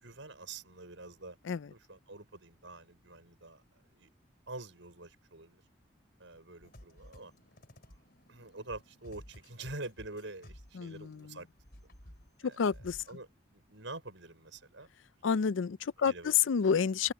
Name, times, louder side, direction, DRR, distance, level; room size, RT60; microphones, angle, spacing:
voice 1, 0.0-1.4 1.7-3.6 3.9-4.1 4.5-5.6 6.2-7.3 7.9-8.0 8.3-11.5 12.4-12.6 13.1-13.3 13.5-14.9 16.0-16.4, right 2 dB, 75° right, 6.1 m, -46 dB
sound 1, 6.6-11.3 11.5-13.2, equal, 50° left, 3.9 m, -55 dB
voice 2, 10.7-11.4 12.4-13.0 15.2-17.1, left 6 dB, 75° left, 0.5 m, -29 dB
open air
head